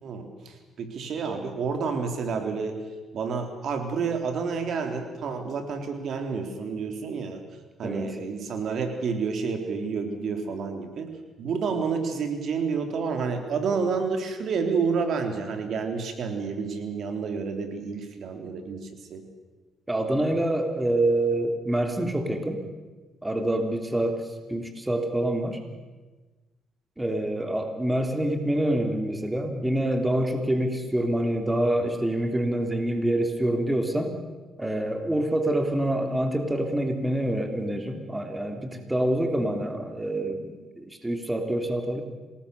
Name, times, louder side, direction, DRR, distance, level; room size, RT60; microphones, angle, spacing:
voice 1, 0.0-2.8 3.1-7.4 7.8-11.1 11.4-19.2, right 5 dB, 65° right, 5 dB, 3.5 m, -29 dB
voice 2, 7.8-8.1 19.9-22.6 23.2-25.6 27.0-34.1 34.6-42.0, right 1 dB, 10° right, 5 dB, 3.1 m, -26 dB
27.0 x 19.5 x 6.9 m, 1.3 s
cardioid pair, 90°, 0 cm